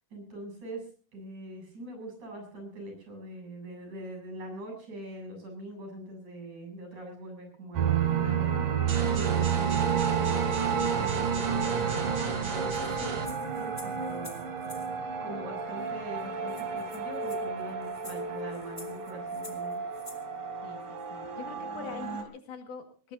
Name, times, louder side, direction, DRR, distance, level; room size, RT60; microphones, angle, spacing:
voice 1, 0.1-0.9 1.1-8.5 9.1-14.5 15.2-19.8, right 1 dB, 60° right, 2 dB, 9.4 m, -42 dB
sound 1, 7.8-22.2, right 7 dB, 80° right, 4.1 m, -31 dB
sound 2, 8.9-13.3, right 3 dB, 45° right, 3.3 m, -36 dB
sound 3, 12.7-14.9 15.9-16.0 16.2-16.3 16.5-20.2, left 1 dB, 5° left, 1.9 m, -49 dB
voice 2, 20.6-23.1, left 5 dB, 70° left, 4 dB, 3.5 m, -44 dB
20.5 x 20.0 x 2.8 m, 0.41 s
omnidirectional pair, 3.8 m